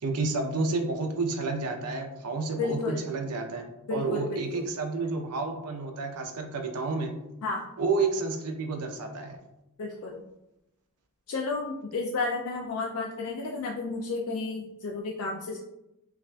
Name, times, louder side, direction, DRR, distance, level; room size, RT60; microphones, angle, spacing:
voice 1, 0.0-3.7 3.9-7.1 7.8-9.4, right 3 dB, 85° right, 4 dB, 0.6 m, -30 dB
voice 2, 2.6-3.1 3.9-4.6 7.4-7.7 9.8-10.2 11.3-15.6, left 3 dB, 70° left, -1 dB, 0.4 m, -32 dB
5.7 x 2.5 x 2.2 m, 0.89 s
head